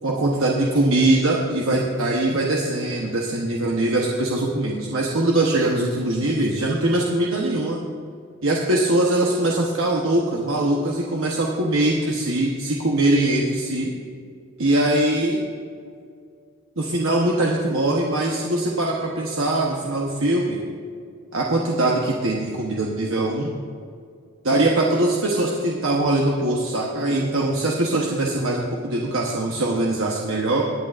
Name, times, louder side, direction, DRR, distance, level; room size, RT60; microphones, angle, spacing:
voice 1, 0.0-7.8 8.4-13.9 14.6-15.4 16.8-20.6 21.3-23.5 24.4-30.6, right 1 dB, 80° right, -2 dB, 1.0 m, -22 dB
19.5 x 9.1 x 2.5 m, 2.2 s
head